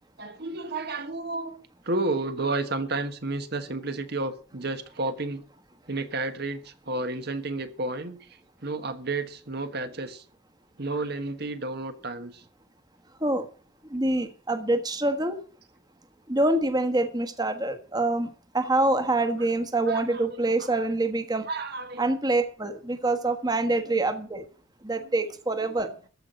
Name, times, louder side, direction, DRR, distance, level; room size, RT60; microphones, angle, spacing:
voice 1, 0.2-5.4 5.9-10.2 10.8-12.4 19.0-19.5 19.9-20.8 21.5-22.0 23.9-24.0 25.0-26.1, right 2 dB, 55° right, 1.3 m, -32 dB
voice 2, 13.9-15.4 16.3-18.3 18.5-21.5 22.0-24.4 24.8-25.9, right 2 dB, 20° right, 1.4 m, -25 dB
14.5 x 5.9 x 9.2 m
head